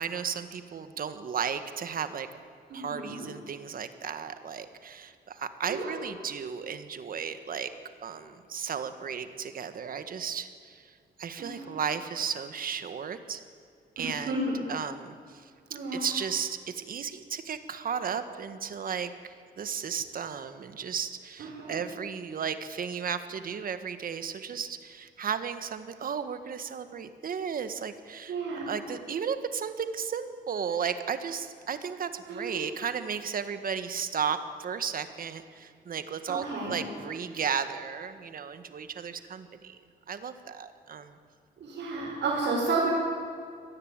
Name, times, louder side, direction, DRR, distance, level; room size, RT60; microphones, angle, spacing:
voice 1, 0.0-2.3 2.7-7.7 8.0-10.8 11.2-13.4 14.0-14.4 14.7-28.4 28.7-39.8 40.1-41.2, right 7 dB, 55° right, 10 dB, 1.6 m, -34 dB
voice 2, 2.7-3.2 5.7-5.9 11.4-11.7 14.0-14.6 15.7-16.1 21.4-21.8 28.3-28.8 32.3-32.6 36.3-36.8 41.6-42.9, right 3 dB, 85° right, -6 dB, 6.3 m, -32 dB
24.5 x 18.5 x 9.0 m, 2.3 s
wide cardioid pair, 160°, 18 cm